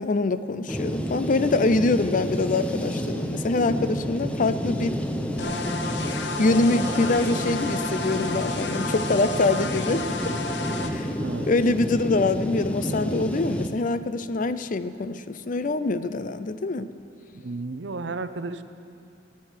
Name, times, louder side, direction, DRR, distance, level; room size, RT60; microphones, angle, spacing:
voice 1, 0.0-5.0 6.1-10.3 10.9-11.1 11.5-16.9, left 3 dB, 45° left, 13 dB, 0.5 m, -24 dB
sound 1, 0.7-13.7, equal, 5° left, 0.8 m, -30 dB
sound 2, 5.4-10.9, left 3 dB, 65° left, 1.0 m, -31 dB
voice 2, 11.2-11.5 17.3-18.6, right 3 dB, 70° right, 11 dB, 0.7 m, -33 dB
16.0 x 8.4 x 9.2 m, 2.5 s
head